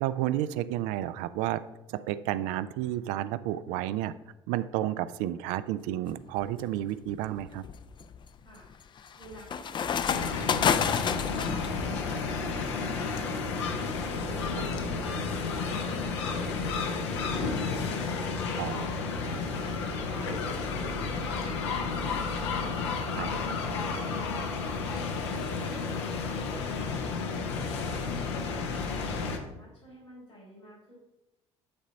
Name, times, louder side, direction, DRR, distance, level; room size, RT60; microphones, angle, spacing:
voice 1, 0.0-1.6 1.9-4.1 4.5-7.6 18.6-18.9 23.2-23.3, right 13 dB, 60° right, 14 dB, 0.4 m, -31 dB
sound 1, 6.1-6.5 7.1-11.7, left 7 dB, 30° left, 0.4 m, -30 dB
voice 2, 9.1-10.9 11.3-13.5 13.9-17.6 18.3-22.2 22.9-27.8 28.3-30.9, equal, 90° left, -12 dB, 2.9 m, -50 dB
sound 2, 10.1-29.4, left 4 dB, 70° left, 0.8 m, -32 dB
9.0 x 3.9 x 5.4 m, 0.94 s
figure-of-eight pair, 50°, 15 cm